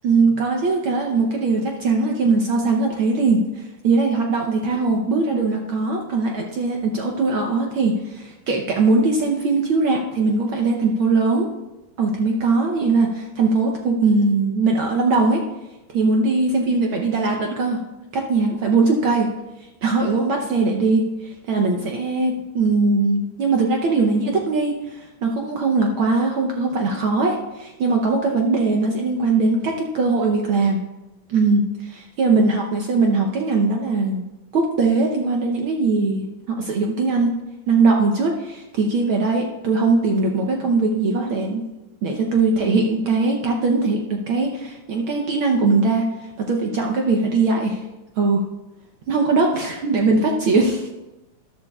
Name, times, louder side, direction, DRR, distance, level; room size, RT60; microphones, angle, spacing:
voice 1, 0.0-11.5 12.0-15.4 15.9-17.8 18.1-19.3 19.8-30.8 31.3-34.2 34.5-37.4 37.7-41.7 42.0-46.1 46.4-47.8 48.2-48.4 49.1-50.9, right 3 dB, 75° right, 1 dB, 1.2 m, -20 dB
13.5 x 11.0 x 2.4 m, 1.0 s
omnidirectional pair, 3.4 m